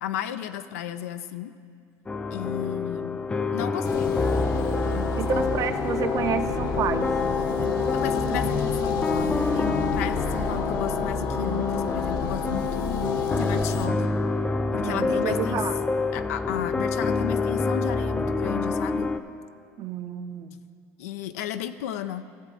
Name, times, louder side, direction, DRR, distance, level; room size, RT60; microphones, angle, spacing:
voice 1, 0.0-1.5 2.3-3.2 3.5-4.2 4.9-5.5 7.9-13.0 13.3-14.1 14.7-15.6 16.1-19.1 21.0-22.2, left 11 dB, 90° left, 11 dB, 0.4 m, -34 dB
sound 1, 2.1-19.2, left 3 dB, 15° left, 0.4 m, -27 dB
sound 2, 3.8-13.9, left 4 dB, 55° left, 1.0 m, -30 dB
voice 2, 5.2-7.1 14.8-15.8 19.8-20.6, right 9 dB, 45° right, 9 dB, 0.6 m, -30 dB
14.5 x 7.4 x 3.8 m, 2.2 s
supercardioid pair, 105°, 8 cm